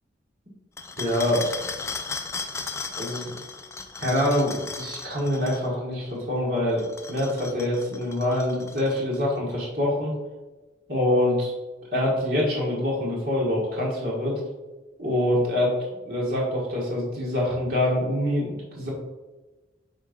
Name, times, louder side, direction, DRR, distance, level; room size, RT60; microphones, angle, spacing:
sound 1, 0.8-5.7 6.7-9.2, left 4 dB, 15° left, 0.3 m, -36 dB
voice 1, 1.0-1.4 2.9-3.3 4.0-10.1 10.9-11.5 11.9-14.4 15.0-15.7 16.1-18.9, left 1 dB, 50° right, -5 dB, 1.7 m, -25 dB
5.1 x 4.4 x 5.2 m, 1.2 s
head